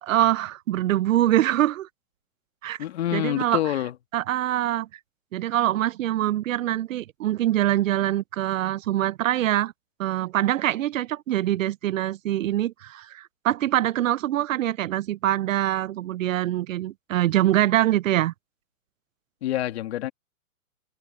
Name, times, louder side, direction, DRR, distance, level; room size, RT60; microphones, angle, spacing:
voice 1, 0.0-1.9 2.6-2.8 3.1-3.6 4.1-4.9 5.3-9.7 10.0-18.3, right 13 dB, 65° right, 0.5 m, -24 dB
voice 2, 2.8-3.9 19.4-20.1, left 13 dB, 45° left, 2.0 m, -27 dB
hypercardioid pair, 165°, 43 cm